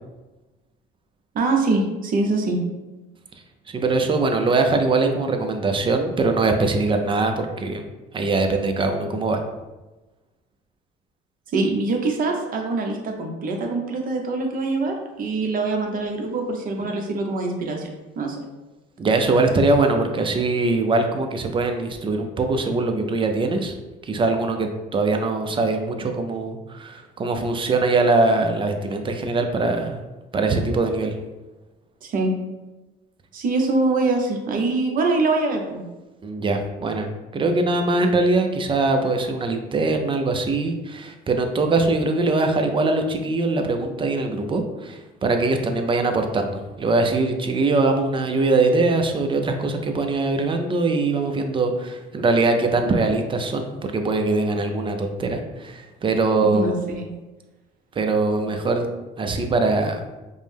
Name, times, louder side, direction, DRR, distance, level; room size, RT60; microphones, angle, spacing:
voice 1, 1.3-2.6 11.5-17.9 18.2-18.4 32.0-32.3 33.3-35.8 56.4-57.1, right 3 dB, 50° right, 2 dB, 0.8 m, -24 dB
voice 2, 3.7-7.9 8.1-9.4 19.0-23.7 24.0-30.0 30.3-31.1 36.2-37.1 37.3-56.7 58.0-58.9 59.2-60.0, right 3 dB, 25° right, 5 dB, 0.5 m, -22 dB
5.2 x 2.1 x 3.3 m, 1.1 s
cardioid pair, 105°, 19 cm